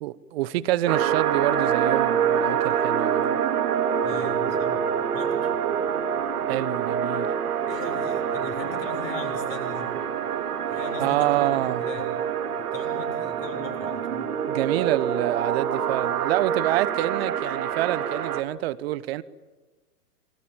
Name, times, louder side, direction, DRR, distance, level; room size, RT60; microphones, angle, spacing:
voice 1, 0.0-3.4 6.5-7.3 11.0-11.9 14.5-19.2, right 15 dB, 40° right, 1.1 m, -27 dB
sound 1, 0.9-18.4, right 8 dB, 65° right, 2.4 m, -26 dB
voice 2, 4.0-4.8 5.1-5.5 7.7-9.9 10.7-12.1 12.5-14.3, left 5 dB, 30° left, 7.1 m, -39 dB
28.0 x 23.5 x 9.0 m
hypercardioid pair, 120°, 48 cm